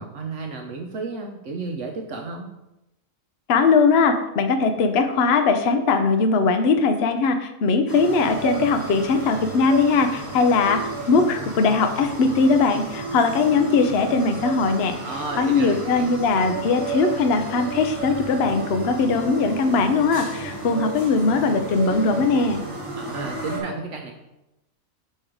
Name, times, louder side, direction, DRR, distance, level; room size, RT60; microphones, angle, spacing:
voice 1, 0.0-2.5 15.0-16.1 22.9-24.1, right 3 dB, 65° right, 2 dB, 1.0 m, -32 dB
voice 2, 3.5-10.8 11.1-15.0 15.4-22.6, left 4 dB, 60° left, 7 dB, 0.8 m, -20 dB
sound 1, 7.9-23.6, right 2 dB, 20° right, 2.5 m, -33 dB
6.1 x 5.4 x 5.0 m, 0.93 s
omnidirectional pair, 1.4 m